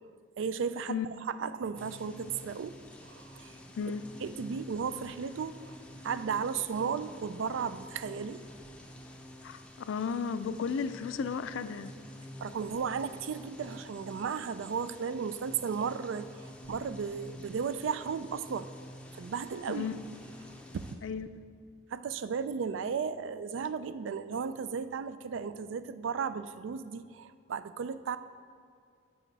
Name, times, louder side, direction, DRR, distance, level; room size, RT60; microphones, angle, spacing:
voice 1, 0.4-1.0 1.3-2.8 3.0-3.5 4.2-5.8 6.0-8.4 12.4-18.7 19.1-19.8 20.5-21.0 21.9-28.2, right 6 dB, 80° right, 13 dB, 0.4 m, -35 dB
sound 1, 1.8-21.0, equal, 5° left, 0.5 m, -49 dB
voice 2, 3.8-4.1 9.4-11.9 19.7-20.0 21.0-21.3, left 6 dB, 85° left, 13 dB, 0.4 m, -34 dB
12.0 x 4.9 x 4.0 m, 2.4 s
head